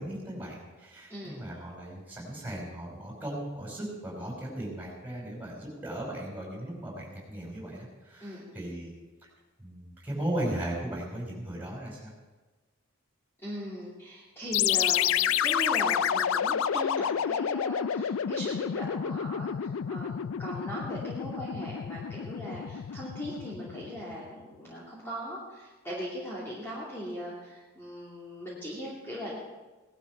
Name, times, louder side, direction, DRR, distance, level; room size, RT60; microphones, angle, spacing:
voice 1, 0.0-8.9 9.6-12.1, right 1 dB, 10° right, -3 dB, 5.2 m, -37 dB
voice 2, 1.1-1.5 8.2-8.5 13.4-29.4, equal, 10° left, -8 dB, 2.8 m, -39 dB
sound 1, 14.5-24.1, left 9 dB, 70° left, 0.4 m, -29 dB
18.5 x 12.5 x 4.7 m, 1.2 s
head